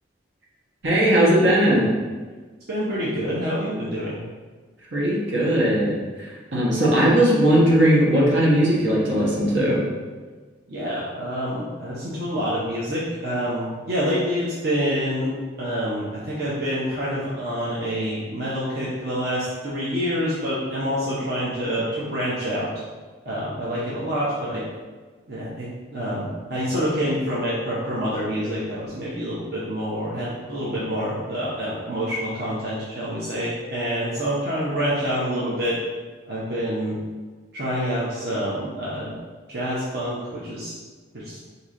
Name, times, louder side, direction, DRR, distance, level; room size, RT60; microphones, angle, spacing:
voice 1, 0.8-1.9 4.9-9.8, right 1 dB, 75° right, -5 dB, 1.3 m, -19 dB
voice 2, 2.7-4.2 10.7-22.7 23.2-24.6 25.3-35.8 36.3-37.0 37.5-39.2 39.5-40.7 41.1-41.4, equal, 55° right, -8 dB, 0.8 m, -27 dB
4.8 x 2.8 x 3.7 m, 1.4 s
head